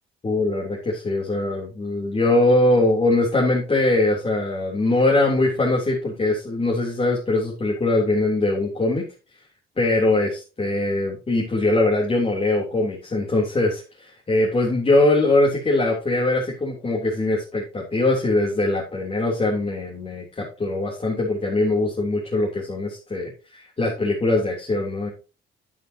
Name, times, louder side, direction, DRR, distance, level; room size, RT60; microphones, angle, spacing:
voice 1, 0.2-9.1 9.8-25.1, left 2 dB, 30° left, -4 dB, 3.5 m, -22 dB
10.0 x 9.2 x 2.9 m, 0.33 s
cardioid pair, 90°, 20 cm